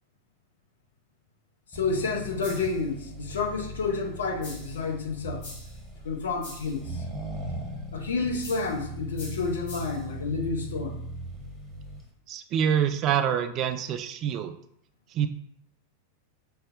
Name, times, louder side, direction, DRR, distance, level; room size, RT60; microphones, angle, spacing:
voice 1, 1.7-5.5 6.0-7.0 7.9-11.0, left 4 dB, 65° left, 2 dB, 0.6 m, -30 dB
Accelerating revving vroom, 1.7-12.1, right 1 dB, ahead, 0.9 m, -39 dB
sound 1, 2.4-2.9 4.4-4.8 5.4-5.8 6.4-6.8 8.4-8.8 9.2-10.1, left 2 dB, 50° left, 1.0 m, -45 dB
voice 2, 12.3-14.6 15.1-15.3, right 9 dB, 35° right, 7 dB, 0.3 m, -26 dB
5.2 x 2.0 x 2.5 m, 0.69 s
figure-of-eight pair, 90°, 0 cm